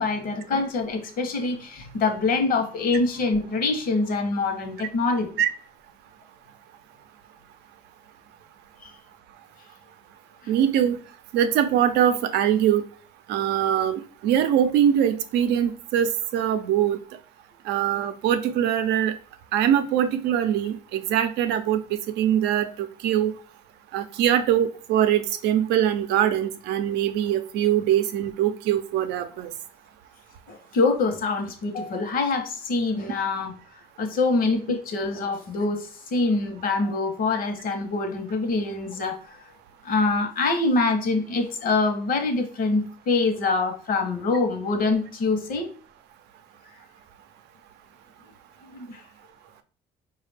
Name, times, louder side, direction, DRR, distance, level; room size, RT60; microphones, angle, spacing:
voice 1, 0.0-5.3 8.8-8.9 10.4-10.5 30.5-33.5 34.0-39.4 39.8-45.7 48.7-49.0, left 3 dB, 60° left, 6 dB, 0.9 m, -25 dB
voice 2, 10.5-11.0 11.3-12.8 13.3-17.0 17.7-19.1 19.5-21.8 22.2-23.3 23.9-29.5, right 10 dB, 85° right, 10 dB, 0.5 m, -22 dB
4.8 x 2.4 x 3.3 m, 0.40 s
cardioid pair, 110°, 17 cm